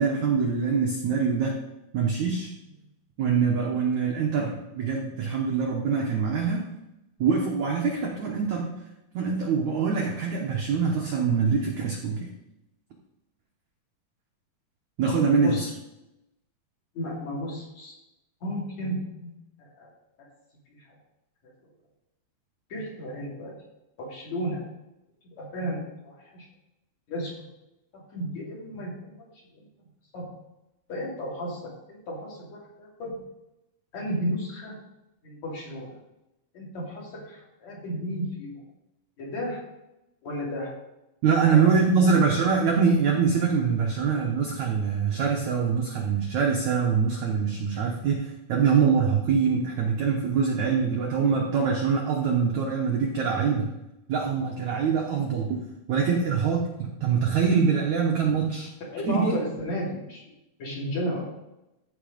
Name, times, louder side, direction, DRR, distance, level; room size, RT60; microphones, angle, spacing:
voice 1, 0.0-1.6 1.9-2.5 3.2-6.6 7.2-8.7 9.1-12.3 15.0-15.7 41.2-53.7 54.1-55.6 55.9-58.7 59.1-59.4, right 5 dB, 80° right, 0 dB, 1.7 m, -24 dB
voice 2, 16.9-17.9 18.4-19.3 19.6-19.9 22.7-23.5 24.0-24.6 25.2-26.5 27.1-27.3 27.9-29.3 29.5-29.6 30.1-30.3 30.9-33.1 33.9-34.8 35.2-36.0 36.5-38.6 39.2-39.6 40.2-40.7 41.5-42.1 58.9-60.2 60.6-61.3, equal, 45° left, -4 dB, 3.4 m, -33 dB
14.5 x 5.1 x 5.1 m, 0.90 s
omnidirectional pair, 5.0 m